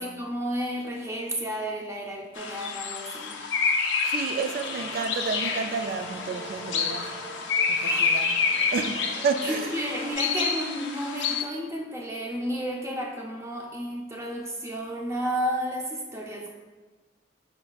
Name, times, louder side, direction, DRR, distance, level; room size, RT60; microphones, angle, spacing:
voice 1, 0.0-3.4 7.7-8.2 9.4-16.5, equal, 15° right, 0.6 m, -32 dB
sound 1, 2.4-11.4, left 5 dB, 80° left, 0.5 m, -28 dB
voice 2, 4.0-7.1 7.7-8.3 8.7-9.7, right 5 dB, 50° right, 0.3 m, -30 dB
sound 2, 4.4-10.1, right 2 dB, 35° right, 1.3 m, -43 dB
5.3 x 4.2 x 2.3 m
head